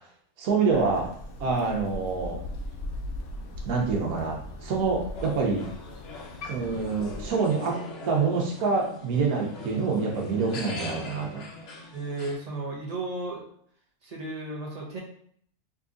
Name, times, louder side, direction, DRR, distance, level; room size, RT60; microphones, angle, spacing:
voice 1, 0.4-1.1 1.4-2.4 3.7-5.7 6.5-7.8 8.1-11.4, right 4 dB, 85° right, -1 dB, 1.3 m, -26 dB
Crow, 0.7-7.3, left 1 dB, 90° left, 1.1 m, -39 dB
sound 1, 5.1-12.3, left 3 dB, 55° left, 0.8 m, -42 dB
voice 2, 11.9-13.4 14.0-15.0, right 2 dB, 35° right, -3 dB, 0.7 m, -34 dB
3.8 x 2.9 x 2.5 m, 0.62 s
omnidirectional pair, 1.5 m